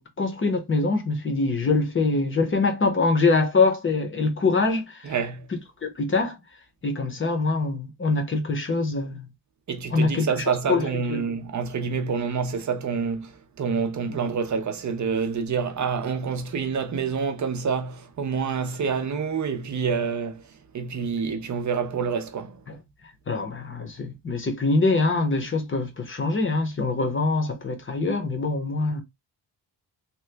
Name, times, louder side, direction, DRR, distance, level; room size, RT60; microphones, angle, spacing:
voice 1, 0.0-5.1 5.8-6.4 6.8-9.3 9.9-11.2 14.1-14.2 22.7-22.8 23.3-29.0, left 3 dB, 30° left, 0.8 m, -24 dB
voice 2, 5.0-5.5 9.7-13.3 13.6-20.4 20.7-22.6, right 6 dB, 40° right, 0.5 m, -27 dB
2.9 x 2.2 x 3.3 m
wide cardioid pair, 150°, 44 cm